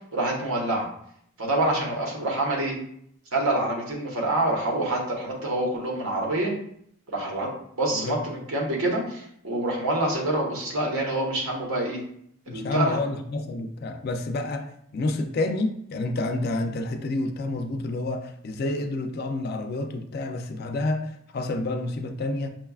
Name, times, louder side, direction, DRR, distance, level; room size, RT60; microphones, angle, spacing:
voice 1, 0.1-0.9 1.4-2.8 3.3-6.5 7.1-7.5 7.8-12.0 12.5-13.0, right 1 dB, 80° right, 1.1 m, -26 dB
voice 2, 12.5-22.5, left 2 dB, 45° left, 0.3 m, -29 dB
5.9 x 2.2 x 2.3 m
head